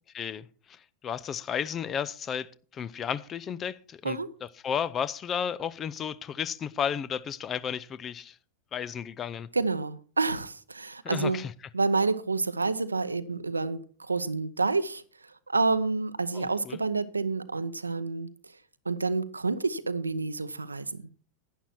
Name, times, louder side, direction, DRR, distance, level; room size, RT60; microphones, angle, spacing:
voice 1, 0.1-0.8 1.0-4.2 4.6-8.4 8.7-9.5 11.0-11.5 16.3-16.8, left 8 dB, 25° left, 0.6 m, -33 dB
voice 2, 9.5-11.4 11.7-15.0 15.5-18.3 18.9-21.1, right 3 dB, 80° right, 0.7 m, -28 dB
11.5 x 10.0 x 4.4 m
figure-of-eight pair, 90°, 0 cm